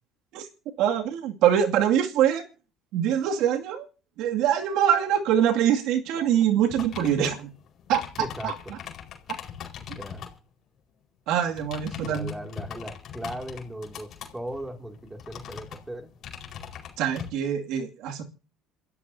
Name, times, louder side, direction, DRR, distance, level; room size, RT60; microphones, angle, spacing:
voice 1, 0.8-2.4 2.9-3.9 4.2-7.5 7.9-8.0 8.4-8.8 9.3-9.4 11.3-12.4 17.0-18.2, right 9 dB, 70° right, 3 dB, 2.3 m, -24 dB
sound 1, 6.7-10.4 11.4-17.3, left 8 dB, 50° left, 4.7 m, -41 dB
voice 2, 8.2-8.5 9.9-10.2 12.0-16.1, right 1 dB, 10° right, 4 dB, 2.6 m, -37 dB
27.5 x 14.0 x 2.8 m, 0.38 s
supercardioid pair, 90°, 0 cm